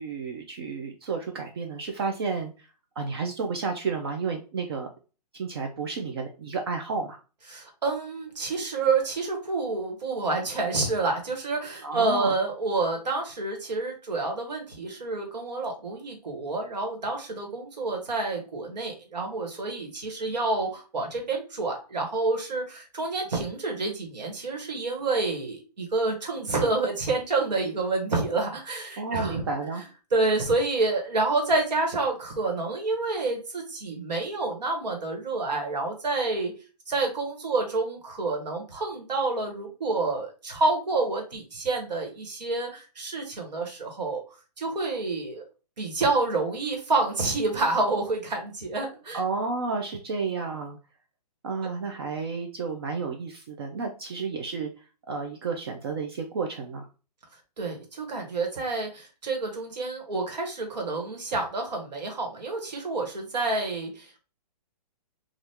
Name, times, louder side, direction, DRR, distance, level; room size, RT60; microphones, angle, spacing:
voice 1, 0.0-2.7 3.0-4.9 5.3-7.2 11.8-12.4 29.0-29.8 49.1-50.8 51.4-54.7 55.1-56.9, right 4 dB, 35° right, 3 dB, 0.4 m, -31 dB
voice 2, 7.5-29.4 30.1-36.5 36.9-44.2 44.6-45.4 45.8-49.2 57.6-64.2, right 3 dB, 85° right, 2 dB, 1.3 m, -28 dB
2.8 x 2.4 x 3.4 m, 0.34 s
hypercardioid pair, 160°, 21 cm